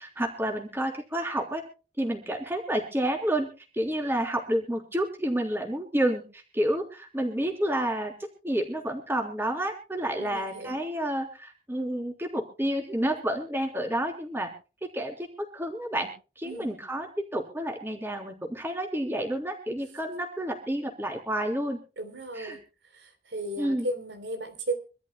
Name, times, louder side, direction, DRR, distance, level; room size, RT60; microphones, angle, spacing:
voice 1, 0.0-1.6 2.0-3.5 3.7-8.1 8.4-14.5 14.9-15.3 15.5-16.1 16.4-17.1 17.3-21.8 22.4-22.6 23.6-23.9, right 1 dB, 15° right, 2 dB, 3.5 m, -29 dB
voice 2, 10.2-10.8 16.4-16.7 22.0-22.6 22.9-24.7, right 1 dB, 90° right, 6 dB, 3.6 m, -35 dB
26.0 x 13.5 x 2.2 m, 0.34 s
head